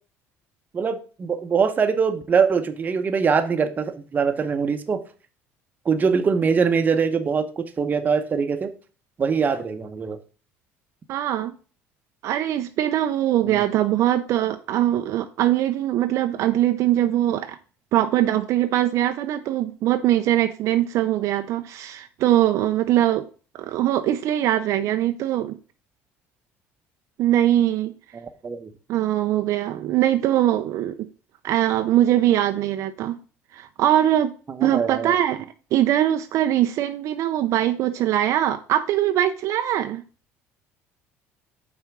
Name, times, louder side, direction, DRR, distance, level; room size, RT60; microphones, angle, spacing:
voice 1, 0.7-5.0 5.8-8.7 9.2-10.2 13.5-13.6 28.1-28.7 34.6-35.1, right 5 dB, 30° right, 0.9 m, -23 dB
voice 2, 11.1-11.5 12.2-17.6 17.9-23.3 23.5-25.6 27.2-27.9 28.9-31.1 31.4-33.2 33.5-34.3 34.6-35.4 35.7-40.0, right 12 dB, 65° right, 0.5 m, -22 dB
5.7 x 4.3 x 6.0 m
cardioid pair, 110°, 6 cm